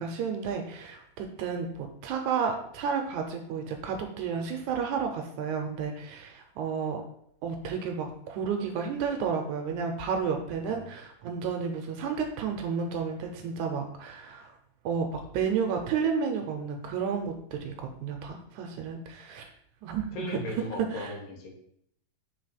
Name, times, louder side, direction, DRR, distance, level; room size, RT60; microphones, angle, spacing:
voice 1, 0.0-7.0 7.4-14.5 14.9-19.5 19.8-20.3 20.9-21.1, right 6 dB, 80° right, 4 dB, 1.9 m, -32 dB
voice 2, 20.1-21.5, left 1 dB, 85° left, 2 dB, 2.7 m, -37 dB
4.7 x 4.0 x 5.0 m, 0.70 s
omnidirectional pair, 3.7 m